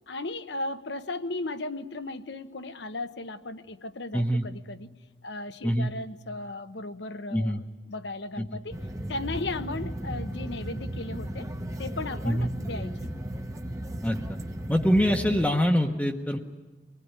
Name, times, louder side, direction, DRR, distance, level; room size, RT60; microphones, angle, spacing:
voice 1, 0.1-4.9 5.2-8.8 9.1-11.5 11.8-13.0, left 2 dB, 75° left, 10 dB, 1.1 m, -36 dB
voice 2, 4.1-4.4 5.6-5.9 7.3-7.6 8.4-8.5 12.2-12.5 14.0-14.2 14.7-16.4, equal, 10° left, 1 dB, 1.0 m, -24 dB
sound 1, 8.7-15.5, right 1 dB, 15° right, 1.0 m, -35 dB
25.0 x 20.5 x 9.7 m, 1.3 s
head